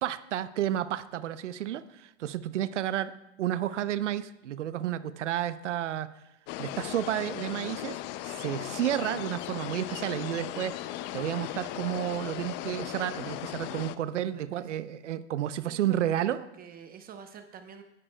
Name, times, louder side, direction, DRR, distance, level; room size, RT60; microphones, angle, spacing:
voice 1, 0.0-3.1 3.4-6.1 6.6-10.9 11.1-16.4, right 11 dB, 85° right, 13 dB, 0.7 m, -31 dB
sound 1, 6.5-14.0, left 14 dB, 30° left, 0.4 m, -37 dB
voice 2, 14.3-14.8 15.6-17.8, right 7 dB, 25° right, 7 dB, 0.8 m, -48 dB
26.5 x 11.0 x 2.2 m, 0.87 s
hypercardioid pair, 120°, 35 cm